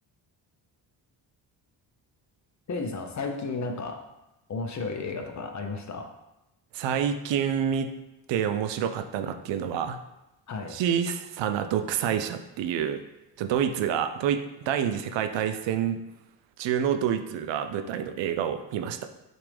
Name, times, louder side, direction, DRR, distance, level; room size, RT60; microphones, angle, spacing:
voice 1, 2.7-4.1 4.5-6.1 10.5-10.8, left 3 dB, 40° left, 5 dB, 0.7 m, -33 dB
voice 2, 6.7-7.9 8.3-10.0 10.7-13.0 13.4-16.0 16.6-19.1, right 8 dB, 75° right, 8 dB, 0.5 m, -28 dB
5.9 x 2.6 x 3.3 m, 0.93 s
cardioid pair, 70°, 45 cm